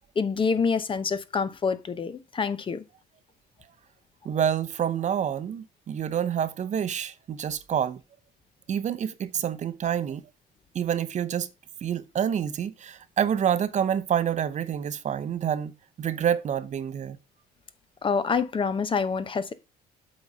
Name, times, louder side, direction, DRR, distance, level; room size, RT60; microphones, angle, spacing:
voice 1, 0.2-2.8 18.0-19.5, left 5 dB, 30° left, 0.8 m, -26 dB
voice 2, 4.2-8.0 8.7-10.2 10.7-11.5 11.8-15.7 16.0-17.2, right 9 dB, 45° right, 0.8 m, -27 dB
8.0 x 4.1 x 5.3 m
cardioid pair, 110°, 17 cm